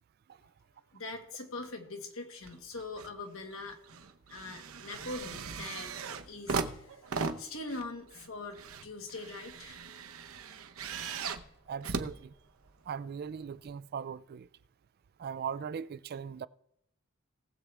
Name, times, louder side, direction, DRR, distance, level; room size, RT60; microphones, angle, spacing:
voice 1, 0.9-3.9 4.3-9.9, left 3 dB, 75° left, 1.7 m, -43 dB
sound 1, 2.4-3.2 3.5-12.9 13.7-13.8, right 4 dB, 85° right, 0.8 m, -39 dB
voice 2, 11.7-12.3 12.9-14.5 15.2-16.5, right 7 dB, 50° right, 0.3 m, -39 dB
19.0 x 7.3 x 3.4 m
head